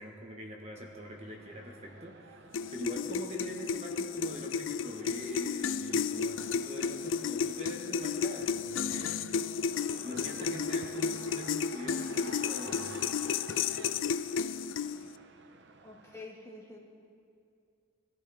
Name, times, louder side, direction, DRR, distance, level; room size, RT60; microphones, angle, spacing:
voice 1, 0.0-2.4 2.7-9.3 10.0-13.0, equal, 35° right, 0 dB, 1.3 m, -43 dB
sound 1, 0.7-16.2, right 4 dB, 60° right, 0.7 m, -52 dB
sound 2, 2.5-15.2, left 6 dB, 70° left, 0.4 m, -33 dB
voice 2, 15.8-16.8, left 2 dB, 15° left, -3 dB, 1.8 m, -47 dB
21.5 x 14.5 x 3.5 m, 2.4 s
head